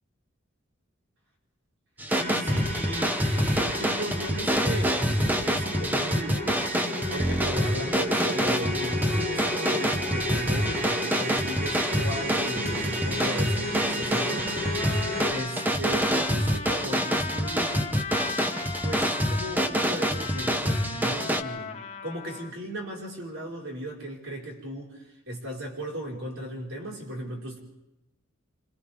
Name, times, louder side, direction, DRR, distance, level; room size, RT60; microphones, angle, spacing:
sound 1, 2.0-21.4, equal, 10° right, 1.0 m, -27 dB
sound 2, 2.1-15.3, equal, 50° right, 3.6 m, -33 dB
voice 1, 2.1-3.2 3.6-5.2 5.4-6.4 7.1-14.6 15.3-17.9 18.8-21.7 22.0-25.0 25.3-27.6, right 1 dB, 70° right, -2 dB, 5.2 m, -36 dB
Trumpet, 14.2-22.5, left 5 dB, 35° left, 1.7 m, -38 dB
28.0 x 26.0 x 3.6 m, 0.90 s
head